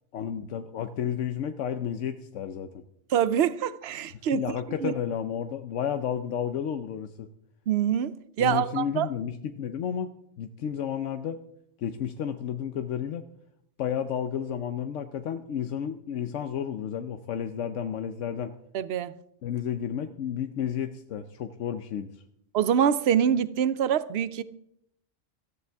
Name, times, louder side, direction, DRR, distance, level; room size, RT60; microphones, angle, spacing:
voice 1, 0.1-2.8 4.3-7.3 8.4-10.1 10.4-11.4 11.8-13.2 13.8-18.5 19.4-22.1, left 8 dB, 85° left, 1.0 m, -32 dB
voice 2, 3.1-4.4 4.8-4.9 7.7-9.1 18.7-19.1 22.5-24.4, right 9 dB, 65° right, 0.9 m, -25 dB
18.0 x 14.0 x 3.5 m
omnidirectional pair, 1.2 m